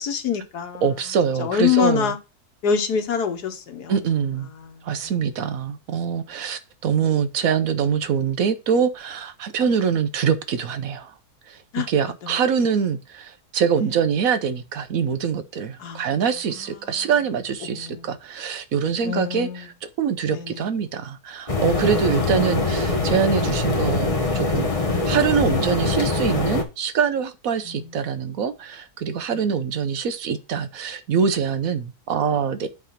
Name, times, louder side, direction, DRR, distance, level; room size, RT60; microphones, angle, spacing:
voice 1, 0.0-0.9 1.4-2.2 2.6-4.0 4.6-4.8 11.7-11.9 15.8-16.0 16.6-17.1 17.7-18.0 19.0-19.7 20.3-20.6 27.7-27.8, left 7 dB, 90° left, 1.7 m, -25 dB
voice 2, 0.8-2.1 3.9-4.5 4.8-11.1 11.5-19.7 20.0-24.7 25.1-32.7, right 7 dB, 65° right, 1.2 m, -24 dB
sound 1, 21.5-26.6, left 3 dB, 25° left, 1.2 m, -23 dB
8.3 x 3.5 x 5.6 m
omnidirectional pair, 1.7 m